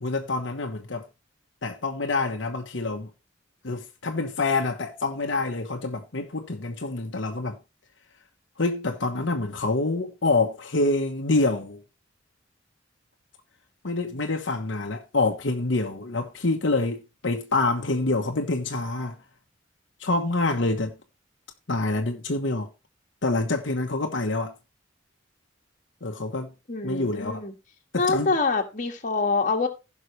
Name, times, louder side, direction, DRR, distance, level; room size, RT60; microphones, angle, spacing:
voice 1, 0.0-1.0 1.6-3.1 3.6-7.6 8.6-11.8 13.8-19.2 20.0-20.9 21.7-22.7 23.2-24.5 26.0-26.5 26.8-27.4 27.9-28.4, left 2 dB, 70° left, 1.2 m, -26 dB
voice 2, 26.7-27.5 28.0-29.7, left 3 dB, 40° left, 1.7 m, -25 dB
16.0 x 5.6 x 3.2 m
head